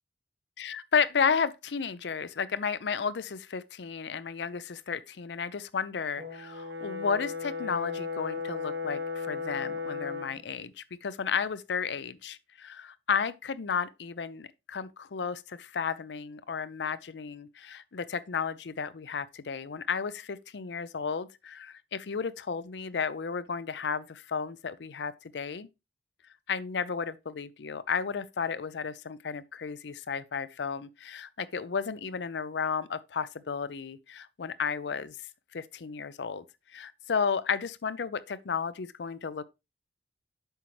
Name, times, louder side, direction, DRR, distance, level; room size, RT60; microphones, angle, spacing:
voice 1, 0.6-25.7 26.5-35.2 35.5-36.4 36.7-39.4, left 6 dB, 75° left, 0.5 m, -33 dB
Brass instrument, 6.2-10.4, left 4 dB, 65° right, 1.3 m, -35 dB
7.9 x 5.8 x 3.1 m
head